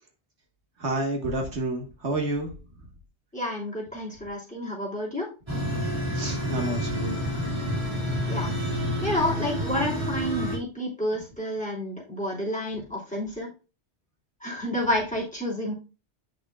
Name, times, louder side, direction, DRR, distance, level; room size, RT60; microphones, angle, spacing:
voice 1, 0.8-2.5 6.1-7.4, right 2 dB, 80° right, 3 dB, 1.8 m, -29 dB
voice 2, 3.3-5.3 8.3-13.5 14.4-15.7, left 1 dB, 5° left, -4 dB, 3.0 m, -30 dB
sound 1, 5.5-10.6, equal, 25° right, 3.0 m, -29 dB
8.4 x 6.3 x 2.4 m, 0.31 s
omnidirectional pair, 1.1 m